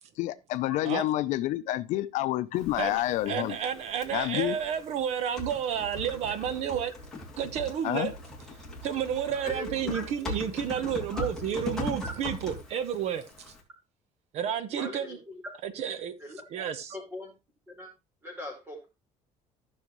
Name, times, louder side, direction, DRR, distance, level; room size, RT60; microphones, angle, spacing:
voice 1, 0.2-3.6 4.1-4.6 7.8-8.1, left 15 dB, 65° left, 0.6 m, -28 dB
Typing, 2.5-13.6, left 1 dB, 5° left, 2.7 m, -40 dB
voice 2, 2.8-6.9 7.4-8.1 8.8-13.2 14.3-15.2 15.6-16.1 16.5-16.9, right 8 dB, 55° right, 1.0 m, -31 dB
voice 3, 9.4-10.4 11.1-11.6 14.7-15.4 16.2-16.4 16.9-17.3 17.7-17.9 18.2-18.9, left 1 dB, 15° right, 4.4 m, -41 dB
14.5 x 6.3 x 3.1 m
cardioid pair, 180°, 13 cm